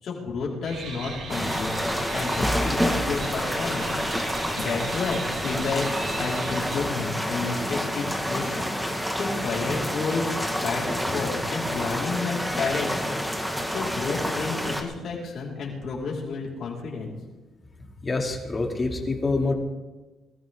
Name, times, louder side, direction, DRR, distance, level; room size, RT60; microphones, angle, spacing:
voice 1, 0.0-4.0 4.6-5.8 6.1-13.2 13.6-17.1, left 4 dB, 60° left, -4 dB, 5.1 m, -31 dB
sound 1, 0.6-6.8, right 3 dB, 75° right, 5.1 m, -37 dB
sound 2, 1.3-14.8, equal, 5° right, 1.9 m, -28 dB
voice 2, 18.0-19.5, left 3 dB, 30° left, 1 dB, 2.8 m, -26 dB
22.0 x 14.0 x 3.9 m, 1.2 s
cardioid pair, 90°, 0 cm